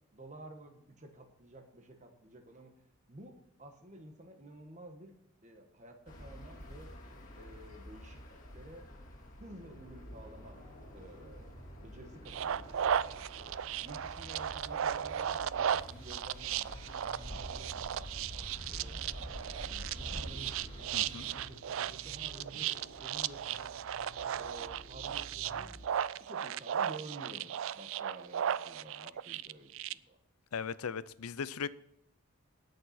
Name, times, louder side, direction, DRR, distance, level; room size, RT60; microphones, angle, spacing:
voice 1, 0.1-2.7 3.1-5.1 5.4-6.9 7.4-8.2 8.5-8.9 9.3-10.6 10.9-12.6 13.3-18.9 19.6-23.7 24.4-25.7 26.2-30.2, right 1 dB, 30° right, 1.3 m, -52 dB
sound 1, 6.1-21.5, equal, 35° left, 2.6 m, -48 dB
sound 2, 9.5-25.9, equal, 15° left, 5.9 m, -54 dB
sound 3, 12.3-29.9, right 9 dB, 60° right, 0.3 m, -36 dB
voice 2, 20.9-21.3 30.5-31.7, left 6 dB, 80° left, 0.5 m, -38 dB
18.5 x 6.7 x 4.3 m
head